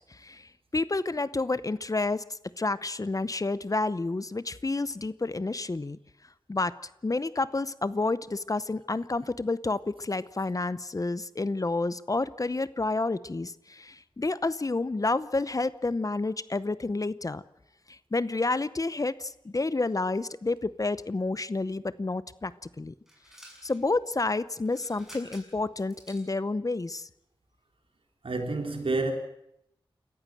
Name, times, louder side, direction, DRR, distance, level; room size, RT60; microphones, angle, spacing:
voice 1, 0.1-6.0 6.5-6.8 7.0-17.4 17.9-22.5 22.8-22.9 23.6-27.1, left 3 dB, 35° left, 0.7 m, -30 dB
sound 1, 23.1-23.8 24.6-26.3, equal, 5° right, 6.7 m, -51 dB
voice 2, 28.2-29.1, right 2 dB, 70° right, 3.7 m, -28 dB
27.0 x 14.5 x 7.7 m
wide cardioid pair, 65°, 10 cm